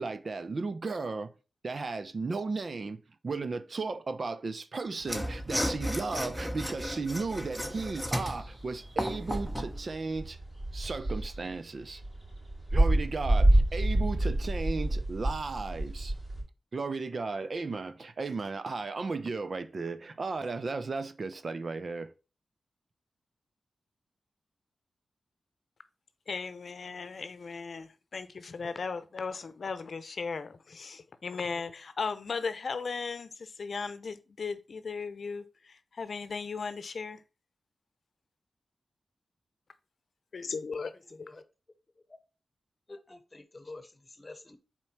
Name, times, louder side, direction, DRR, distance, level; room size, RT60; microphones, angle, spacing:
voice 1, 0.0-1.3 1.6-10.4 10.7-12.0 12.7-16.1 16.7-22.1, right 3 dB, 60° right, 0.6 m, -35 dB
Mechanisms / Sawing, 5.0-9.8, equal, 5° right, 1.0 m, -34 dB
sound 1, 5.4-16.4, right 1 dB, 40° right, 4.0 m, -30 dB
voice 2, 26.3-37.2 40.3-40.9, left 5 dB, 65° left, 0.7 m, -37 dB
voice 3, 42.9-44.6, left 2 dB, 30° left, 1.1 m, -48 dB
4.5 x 4.4 x 5.7 m
cardioid pair, 50°, 0 cm